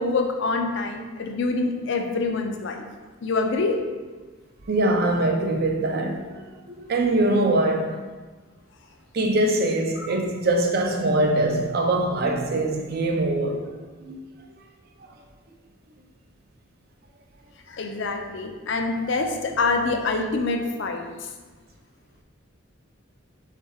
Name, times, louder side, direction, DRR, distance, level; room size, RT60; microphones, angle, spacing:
voice 1, 0.0-2.9 3.2-3.8 10.0-10.2 17.7-21.3, left 3 dB, 60° left, 0.5 m, -26 dB
voice 2, 4.7-6.4 6.7-8.0 9.1-13.7 14.0-14.2 19.0-19.1, right 1 dB, 50° right, 0.5 m, -23 dB
3.6 x 3.4 x 4.2 m
head